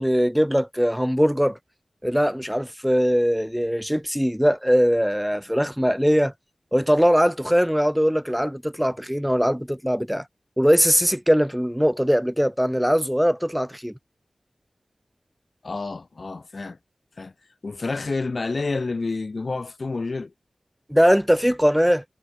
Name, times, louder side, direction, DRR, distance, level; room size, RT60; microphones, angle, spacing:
voice 1, 0.0-1.6 2.0-6.3 6.7-10.2 10.6-13.9 20.9-22.0, equal, ahead, 0.5 m, -21 dB
voice 2, 15.6-16.8 17.2-17.3 17.6-20.3, left 3 dB, 60° left, 0.6 m, -29 dB
wide cardioid pair, 50°, 0 cm